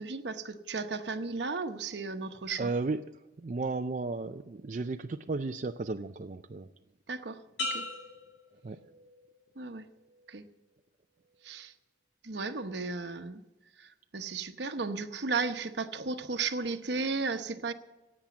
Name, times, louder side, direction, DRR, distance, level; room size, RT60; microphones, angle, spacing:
voice 1, 0.0-2.7 7.1-7.8 9.6-9.9 10.3-10.4 11.4-11.7 12.2-13.4 13.8-17.7, right 4 dB, 70° right, 9 dB, 0.9 m, -35 dB
voice 2, 2.6-3.0 3.4-6.7 8.6-8.8, right 3 dB, 40° right, 7 dB, 0.4 m, -34 dB
sound 1, 7.6-9.4 9.9-10.3, left 2 dB, 80° left, 4.6 m, -39 dB
16.0 x 8.9 x 7.3 m, 1.1 s
head